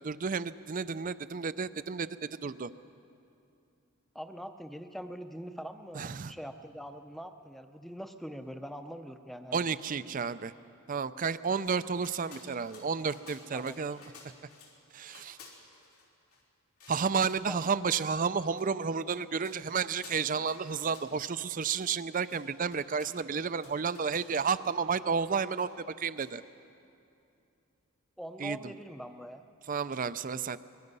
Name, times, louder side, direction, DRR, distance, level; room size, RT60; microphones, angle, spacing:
voice 1, 0.0-2.7 5.9-6.3 9.5-10.5 10.9-14.0 14.9-15.4 16.9-26.4 28.4-28.7 29.7-30.6, right 5 dB, 40° right, 14 dB, 0.5 m, -31 dB
voice 2, 4.1-9.6 13.5-13.8 17.5-17.6 28.2-29.4, equal, ahead, 7 dB, 0.7 m, -43 dB
sound 1, 11.3-14.8 15.0-16.4 16.8-17.5 18.0-18.1 18.6-18.7 19.0-21.4 21.7-21.8 22.1-24.6 25.2-25.9 26.2-26.3, left 4 dB, 85° left, 3.7 m, -55 dB
25.5 x 21.0 x 5.4 m, 2.6 s
head